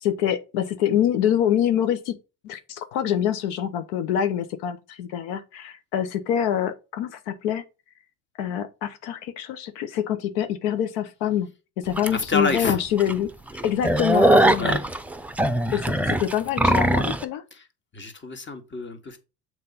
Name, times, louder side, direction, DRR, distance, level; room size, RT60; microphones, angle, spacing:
voice 1, 0.0-2.2 2.4-7.6 8.4-11.5 11.8-13.3 13.6-14.8 15.7-17.4, left 10 dB, 80° left, 1.0 m, -25 dB
sound 1, 12.0-12.1 12.6-12.7 13.0-13.1 13.5-17.2, right 1 dB, 5° right, 0.6 m, -20 dB
voice 2, 12.1-12.8 14.6-14.8 17.5-17.6 17.9-19.2, left 3 dB, 25° left, 1.6 m, -28 dB
6.8 x 4.7 x 4.1 m
supercardioid pair, 85°, 46 cm